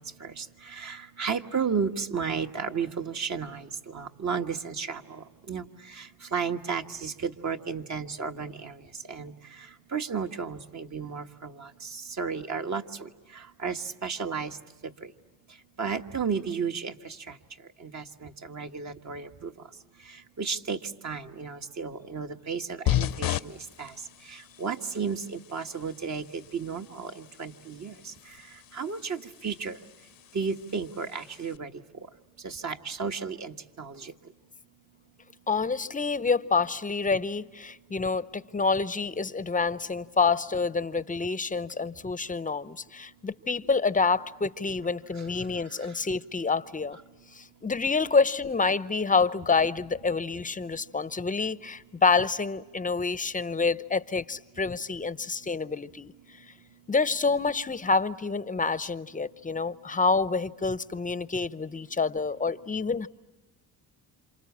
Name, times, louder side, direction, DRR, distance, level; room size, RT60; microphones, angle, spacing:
voice 1, 0.7-3.6 3.9-5.6 6.3-8.7 9.1-9.3 9.9-11.5 12.2-12.8 13.6-14.5 15.8-17.1 17.8-19.5 20.4-20.8 21.0-23.9 24.6-27.9 28.7-29.8 30.3-31.7 32.4-34.1, right 6 dB, 45° right, 1.6 m, -33 dB
sound 1, 22.9-31.6, left 13 dB, 60° left, 0.8 m, -36 dB
voice 2, 35.5-47.0 47.3-56.1 56.9-63.1, left 4 dB, 20° left, 0.8 m, -27 dB
29.0 x 27.0 x 7.4 m
supercardioid pair, 80°, 40 cm